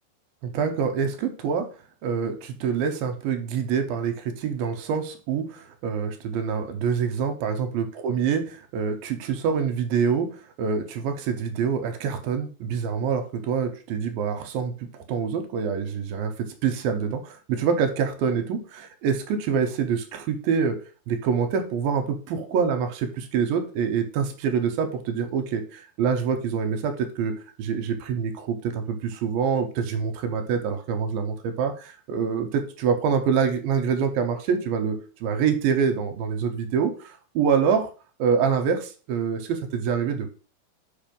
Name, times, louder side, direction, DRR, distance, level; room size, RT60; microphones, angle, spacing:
voice 1, 0.4-1.7 2.0-10.3 10.6-20.8 21.1-37.9 38.2-40.4, right 6 dB, 75° right, 7 dB, 2.4 m, -26 dB
5.4 x 5.3 x 5.3 m, 0.37 s
omnidirectional pair, 4.7 m